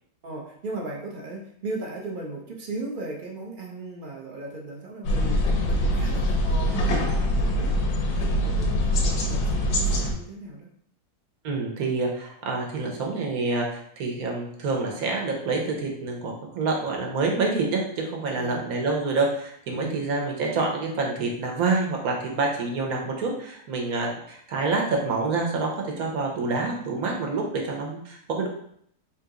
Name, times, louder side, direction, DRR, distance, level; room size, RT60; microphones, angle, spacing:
voice 1, 0.2-10.7 18.3-18.7 19.7-20.1, right 2 dB, 55° right, -1 dB, 0.6 m, -37 dB
sound 1, 5.0-10.1, equal, 80° left, 1.2 m, -23 dB
voice 2, 11.4-25.7 26.0-28.5, right 3 dB, 70° right, 0 dB, 1.3 m, -27 dB
3.5 x 2.9 x 3.6 m, 0.68 s
omnidirectional pair, 1.6 m